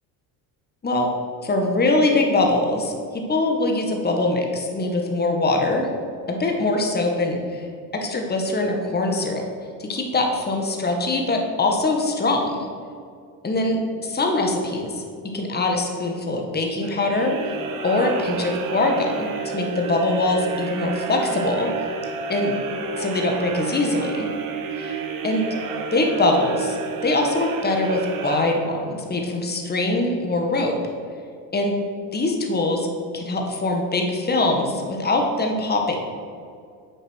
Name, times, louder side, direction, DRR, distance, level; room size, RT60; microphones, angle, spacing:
voice 1, 1.4-5.9 6.3-7.7 7.9-9.4 9.8-12.7 13.4-17.4 17.8-21.7 22.3-22.6 23.0-24.3 24.7-25.5 25.9-26.8 27.0-30.8 31.5-31.8 32.1-32.9 33.1-36.0, left 2 dB, 25° left, 2 dB, 1.7 m, -23 dB
sound 1, 16.8-29.1, right 4 dB, 55° right, 1.3 m, -31 dB
8.2 x 6.9 x 6.4 m, 2.3 s
supercardioid pair, 90°, 40 cm